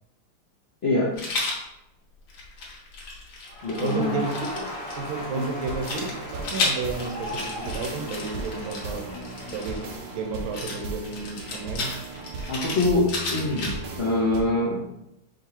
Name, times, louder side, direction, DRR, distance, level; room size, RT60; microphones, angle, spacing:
voice 1, 0.8-1.1 3.6-4.2 5.3-5.5 12.5-14.8, left 2 dB, 60° left, -7 dB, 0.6 m, -24 dB
Rattle, 1.2-1.6 2.3-4.9 5.8-9.9 10.5-14.0, left 3 dB, 80° left, 1.9 m, -33 dB
Crowd, 3.5-10.5, left 1 dB, 35° left, 1.5 m, -38 dB
voice 2, 3.8-9.0 9.5-9.8 10.1-11.9, right 4 dB, 80° right, 3 dB, 1.5 m, -32 dB
sound 1, 5.1-14.4, right 3 dB, 65° right, 1.0 m, -38 dB
5.0 x 3.5 x 2.8 m, 0.85 s
omnidirectional pair, 2.3 m